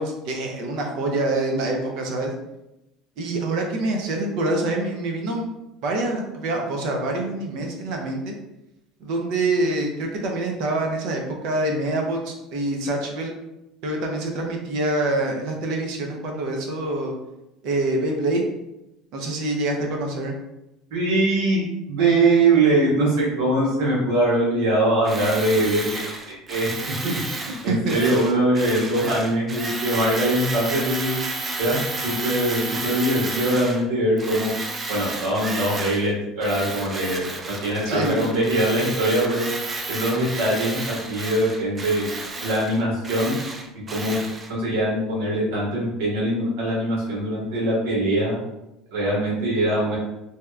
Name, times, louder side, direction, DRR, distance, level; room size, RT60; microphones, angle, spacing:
voice 1, 0.0-2.3 3.2-5.5 5.8-8.3 9.0-13.3 13.8-17.1 17.6-18.4 19.1-20.3 27.7-28.0 37.8-38.2, right 2 dB, 65° right, 1 dB, 0.7 m, -25 dB
voice 2, 20.9-27.0 27.6-31.1 31.6-34.5 34.9-37.2 37.6-39.5 39.9-42.0 42.4-43.4 43.9-44.2 44.5-48.4 48.9-50.0, right 1 dB, 90° right, -5 dB, 1.4 m, -22 dB
Tools, 25.0-33.8 34.2-36.1 36.4-44.5, right 3 dB, 25° right, 0.4 m, -32 dB
2.8 x 2.3 x 3.3 m, 0.92 s
cardioid pair, 130°, 0 cm